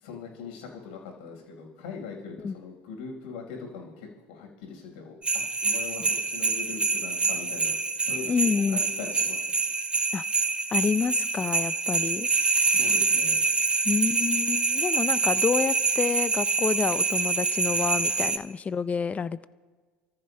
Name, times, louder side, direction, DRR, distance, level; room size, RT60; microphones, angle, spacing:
voice 1, 0.0-5.1 5.6-7.8 8.0-9.5 12.6-13.4, left 5 dB, 80° left, 1 dB, 4.6 m, -41 dB
sound 1, 5.2-18.4, right 4 dB, 20° right, 1.0 m, -26 dB
voice 2, 8.3-8.8 10.1-10.2 10.7-12.3 13.8-19.4, left 6 dB, 25° left, 15 dB, 0.5 m, -28 dB
28.0 x 14.5 x 2.2 m, 1.4 s
hypercardioid pair, 85°, 5 cm